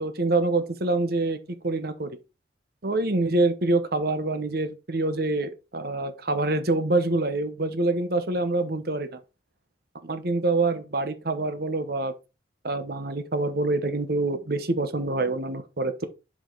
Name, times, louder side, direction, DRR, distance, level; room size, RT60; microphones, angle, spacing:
voice 1, 0.0-1.4 1.6-2.2 2.8-9.2 10.0-12.1 12.6-16.1, right 2 dB, 55° right, 1.0 m, -26 dB
7.3 x 5.3 x 3.9 m
head